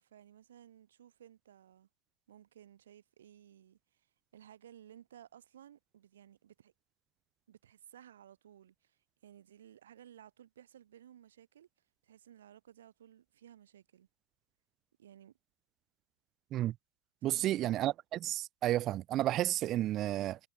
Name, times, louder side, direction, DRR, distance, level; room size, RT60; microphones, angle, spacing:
voice 1, 0.0-1.9 2.3-4.1 4.3-6.7 7.5-11.7 12.0-14.1 15.0-15.3 17.2-17.6, right 10 dB, 60° right, 2.0 m, -57 dB
voice 2, 17.2-20.4, right 14 dB, 35° right, 0.4 m, -32 dB
figure-of-eight pair, 90°, 0 cm